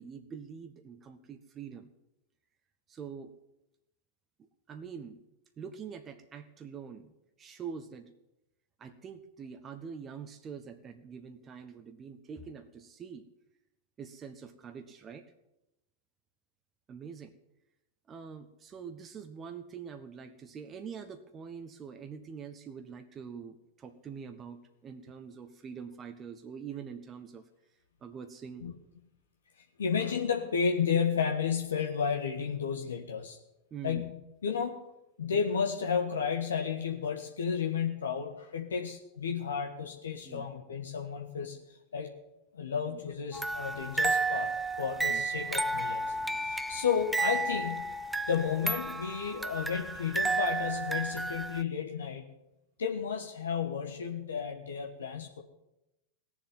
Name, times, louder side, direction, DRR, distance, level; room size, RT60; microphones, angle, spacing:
voice 1, 0.0-1.9 2.9-3.3 4.7-5.3 5.6-8.1 8.8-13.3 14.0-15.3 16.9-17.3 18.1-27.4 28.0-28.7 33.7-34.0 40.2-40.5 42.9-43.0 45.1-45.2, right 6 dB, 25° right, 7 dB, 1.2 m, -44 dB
voice 2, 29.8-33.4 33.8-34.1 34.4-34.8 35.2-42.1 42.5-46.1 46.4-48.0 48.3-52.3 52.8-55.4, left 6 dB, 75° left, 3 dB, 1.4 m, -32 dB
sound 1, 43.3-51.6, right 3 dB, 5° right, 0.8 m, -32 dB
18.0 x 7.4 x 9.6 m, 0.91 s
figure-of-eight pair, 90°, 0 cm